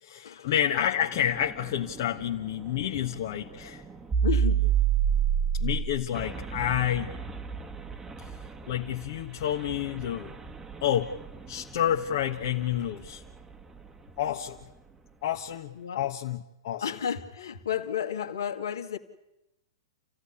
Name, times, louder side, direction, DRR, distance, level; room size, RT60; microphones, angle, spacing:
voice 1, 0.0-3.8 5.5-7.1 8.2-8.3 8.7-10.3 10.8-11.2 11.5-13.2 14.2-14.6 15.2-16.9, left 10 dB, 55° left, 1.3 m, -29 dB
sound 1, 1.1-13.9, right 8 dB, 15° right, 1.6 m, -31 dB
voice 2, 4.2-4.6 15.8-16.0 16.8-19.0, left 8 dB, 75° left, 2.1 m, -32 dB
29.0 x 15.5 x 10.0 m
hypercardioid pair, 110°, 2 cm